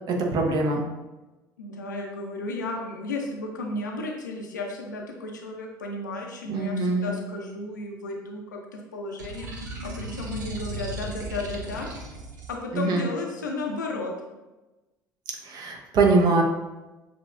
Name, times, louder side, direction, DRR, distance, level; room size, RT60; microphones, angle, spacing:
voice 1, 0.1-0.8 6.5-7.1 12.7-13.1 15.5-16.4, right 3 dB, 45° right, 2 dB, 0.8 m, -23 dB
voice 2, 1.6-11.9 12.5-14.1, left 2 dB, 80° left, 1 dB, 0.6 m, -33 dB
sound 1, 9.2-12.6, right 1 dB, 75° right, 0.6 m, -36 dB
6.7 x 2.9 x 2.4 m, 1.1 s
figure-of-eight pair, 60°, 10 cm